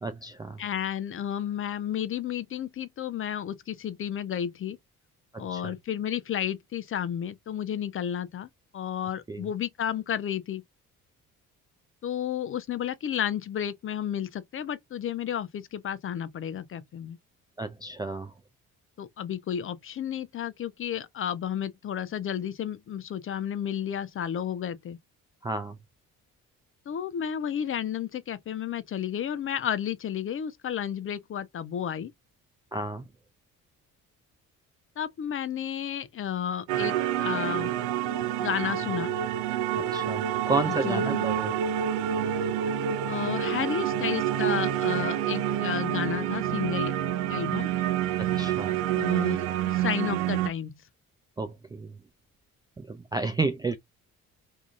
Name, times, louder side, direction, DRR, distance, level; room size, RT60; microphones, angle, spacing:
voice 1, 0.0-0.6 5.3-5.7 9.3-9.5 17.6-18.3 25.4-25.8 32.7-33.1 39.8-41.5 48.2-48.8 51.4-51.9 52.8-53.8, right 3 dB, 10° right, 0.4 m, -32 dB
voice 2, 0.6-4.8 5.4-10.6 12.0-17.2 19.0-25.0 26.9-32.1 35.0-37.7 38.4-39.1 40.6-41.3 43.1-46.9 47.3-47.7 48.9-50.8, left 9 dB, 30° left, 0.6 m, -32 dB
sound 1, 36.7-50.5, right 10 dB, 60° right, 0.8 m, -28 dB
4.8 x 2.7 x 2.4 m
figure-of-eight pair, 45°, 43 cm